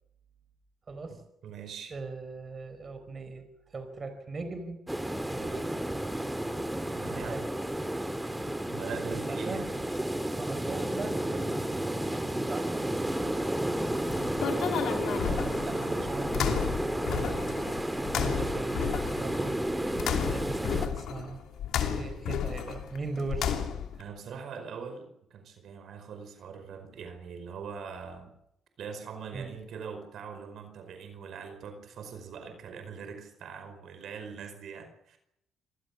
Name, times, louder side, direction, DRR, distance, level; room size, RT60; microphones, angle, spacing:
voice 1, 0.9-1.2 1.9-4.8 5.3-5.8 7.1-7.4 9.3-9.8 10.3-11.8 12.5-13.3 15.3-17.4 18.1-19.5 20.3-23.7 29.3-29.5, right 3 dB, 35° right, 8 dB, 4.7 m, -39 dB
voice 2, 1.4-1.9 6.9-7.4 8.7-9.7 14.1-14.4 24.0-28.3 28.8-35.2, right 6 dB, 70° right, 8 dB, 5.1 m, -42 dB
sound 1, 4.9-20.9, right 1 dB, 5° right, 2.1 m, -32 dB
sound 2, 13.8-24.0, left 8 dB, 80° left, 2.9 m, -33 dB
27.0 x 18.5 x 7.3 m, 0.78 s
cardioid pair, 90°, 0 cm